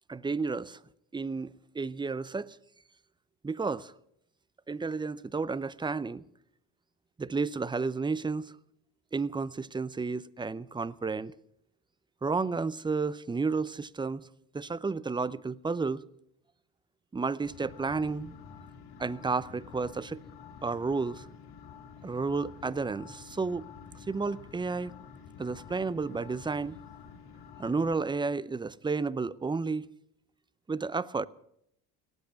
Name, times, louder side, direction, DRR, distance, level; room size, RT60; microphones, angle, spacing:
voice 1, 0.1-0.8 1.1-2.6 3.4-3.9 4.7-6.2 7.2-8.5 9.1-11.3 12.2-14.3 14.5-16.0 17.1-18.4 19.0-20.2 20.6-21.3 22.0-23.7 24.1-24.9 25.4-26.8 27.6-29.8 30.7-31.3, right 4 dB, 10° right, 0.6 m, -32 dB
sound 1, 17.4-28.1, left 6 dB, 65° left, 2.3 m, -49 dB
18.0 x 8.3 x 9.2 m
supercardioid pair, 75°, 41 cm